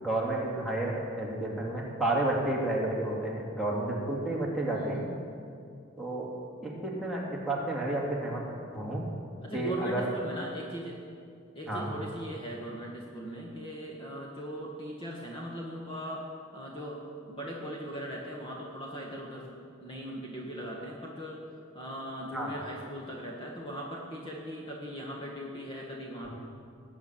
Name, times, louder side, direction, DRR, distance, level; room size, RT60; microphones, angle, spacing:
voice 1, 0.0-5.1 6.0-6.3 6.6-8.4 8.7-9.0 9.5-10.1 11.7-11.9 22.3-22.5, right 1 dB, ahead, -4 dB, 2.6 m, -31 dB
voice 2, 9.4-11.0 11.5-16.2 16.5-17.0 17.3-19.5 19.8-21.4 21.7-26.4, equal, 25° left, -2 dB, 1.7 m, -39 dB
19.0 x 8.8 x 7.5 m, 2.4 s
head